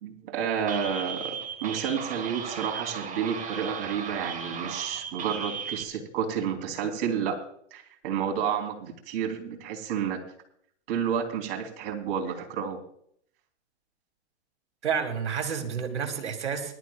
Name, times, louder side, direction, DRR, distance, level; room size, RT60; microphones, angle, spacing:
voice 1, 0.0-7.4 7.7-10.2 10.9-12.8, right 7 dB, 55° right, 3 dB, 3.7 m, -30 dB
sound 1, 0.7-5.8, right 6 dB, 20° right, 2.2 m, -36 dB
voice 2, 14.8-16.8, right 7 dB, 80° right, 6 dB, 2.9 m, -30 dB
21.5 x 12.5 x 2.5 m, 0.65 s
hypercardioid pair, 110°, 34 cm